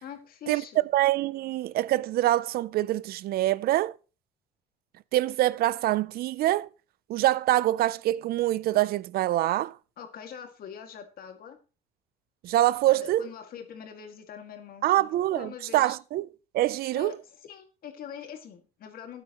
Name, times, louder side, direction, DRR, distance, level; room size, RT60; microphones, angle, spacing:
voice 1, 0.0-0.9 10.0-11.6 12.9-16.0 17.0-17.2 17.4-19.2, left 8 dB, 60° left, 2.0 m, -43 dB
voice 2, 0.9-4.0 5.1-6.7 7.1-9.7 12.4-13.3 14.8-16.3 16.5-17.1, right 15 dB, 65° right, 0.4 m, -25 dB
13.0 x 9.1 x 2.9 m
cardioid pair, 110°, 17 cm